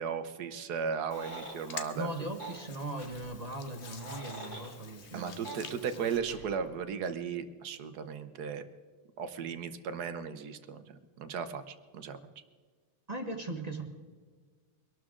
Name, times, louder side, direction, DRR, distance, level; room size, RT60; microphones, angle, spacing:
voice 1, 0.0-2.1 5.1-8.6 9.2-12.2, right 6 dB, 60° right, 11 dB, 1.2 m, -36 dB
sound 1, 0.9-1.6 2.4-2.6 3.7-4.7 5.4-5.6, right 2 dB, 15° left, 5.1 m, -43 dB
Hands, 1.1-6.2, left 6 dB, 45° left, 0.9 m, -48 dB
voice 2, 1.9-5.4 5.7-6.1 13.1-13.8, right 2 dB, 25° right, 4 dB, 1.0 m, -39 dB
sound 2, 2.9-3.8 4.4-4.5 5.3-5.4 5.9-7.1, left 1 dB, 90° left, 6.8 m, -56 dB
24.0 x 12.5 x 3.8 m, 1.5 s
omnidirectional pair, 2.2 m